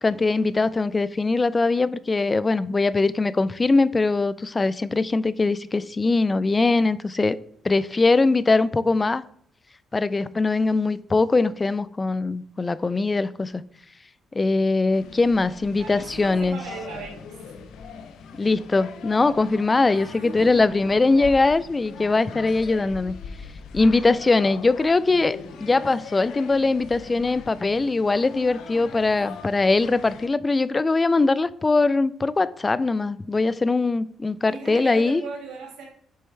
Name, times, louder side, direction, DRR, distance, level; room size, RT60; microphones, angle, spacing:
voice 1, 0.0-7.4 7.6-9.2 9.9-13.6 14.3-16.6 18.4-23.1 23.7-35.2, left 3 dB, 25° left, 0.3 m, -21 dB
sound 1, 14.9-30.3, left 5 dB, 80° left, 0.6 m, -41 dB
voice 2, 15.8-17.4 19.9-20.8 21.2-21.3 29.4-29.6 34.5-35.9, right 4 dB, 85° right, 1.9 m, -38 dB
6.8 x 4.4 x 3.2 m
cardioid pair, 90°, 0 cm